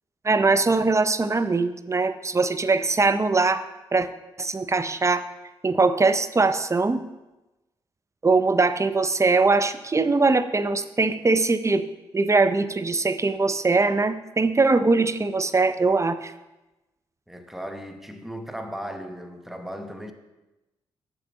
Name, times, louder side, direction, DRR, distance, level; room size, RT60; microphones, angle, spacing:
voice 1, 0.2-3.6 3.9-4.1 4.4-5.3 5.6-7.0 8.2-11.8 12.1-16.3, right 3 dB, 25° right, 12 dB, 0.6 m, -21 dB
voice 2, 17.3-20.1, equal, ahead, 6 dB, 1.0 m, -36 dB
7.4 x 7.0 x 4.1 m, 1.0 s
hypercardioid pair, 40°, 12 cm